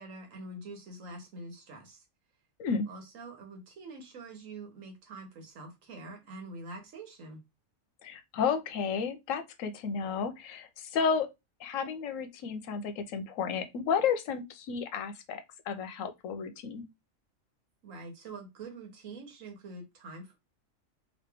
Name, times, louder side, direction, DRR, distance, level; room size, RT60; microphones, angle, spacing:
voice 1, 0.0-2.0 2.9-7.4 17.8-20.4, right 2 dB, 80° right, 1.4 m, -45 dB
voice 2, 8.0-11.3 11.6-16.8, left 6 dB, 85° left, 1.0 m, -32 dB
3.0 x 2.8 x 3.3 m
omnidirectional pair, 1.3 m